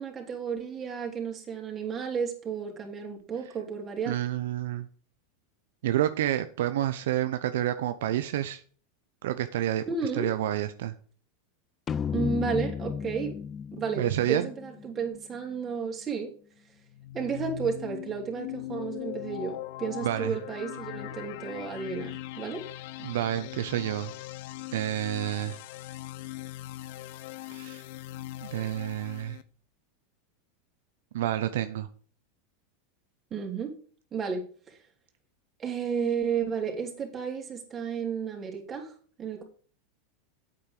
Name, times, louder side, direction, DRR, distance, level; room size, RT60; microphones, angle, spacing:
voice 1, 0.0-4.2 9.9-10.3 12.1-13.4 13.8-14.0 14.3-16.3 17.1-22.6 33.3-33.7 34.1-34.8 35.6-38.9 39.2-39.4, right 6 dB, 25° right, 1 dB, 3.4 m, -32 dB
voice 2, 4.1-4.9 5.8-8.6 9.2-9.8 10.2-10.9 14.0-14.5 20.0-20.4 23.0-24.1 24.7-25.6 27.5-27.8 28.4-29.4 31.1-31.9, right 12 dB, 75° right, 10 dB, 0.6 m, -29 dB
sound 1, 11.9-15.4, left 7 dB, 30° left, 0.3 m, -34 dB
sound 2, 16.9-29.4, left 16 dB, 70° left, 0.6 m, -40 dB
8.6 x 8.5 x 4.8 m, 0.43 s
hypercardioid pair, 115°, 0 cm